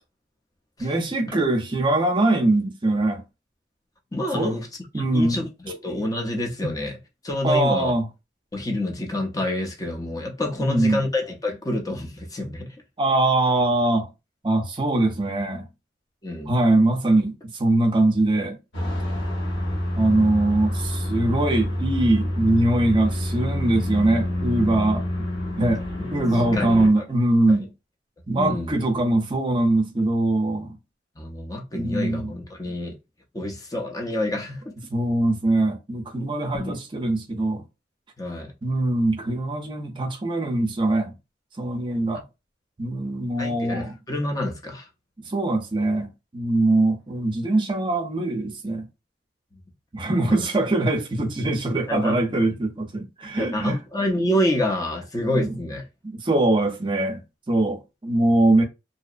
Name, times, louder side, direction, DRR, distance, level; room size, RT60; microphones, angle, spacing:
voice 1, 0.8-3.2 4.3-4.6 4.9-5.4 6.6-6.7 7.4-8.1 10.6-11.0 13.0-14.1 14.4-15.7 16.5-18.6 19.9-25.0 25.6-25.8 26.1-27.7 28.3-30.8 31.7-32.3 34.9-37.6 38.6-41.1 41.6-42.2 42.8-44.0 45.3-48.9 49.9-53.8 55.3-55.6 56.0-58.6, right 2 dB, 30° right, 0.5 m, -22 dB
voice 2, 4.1-4.7 5.1-7.0 7.2-7.9 8.5-12.8 16.2-16.6 26.0-26.1 26.5-27.0 27.5-27.6 28.3-28.8 31.2-32.9 33.3-34.6 36.5-36.8 38.2-38.5 43.4-44.9 50.3-50.4 51.9-52.2 53.4-55.8, left 1 dB, 20° left, 0.6 m, -27 dB
sound 1, 18.7-26.9, left 1 dB, 75° left, 1.2 m, -27 dB
2.7 x 2.0 x 2.4 m
head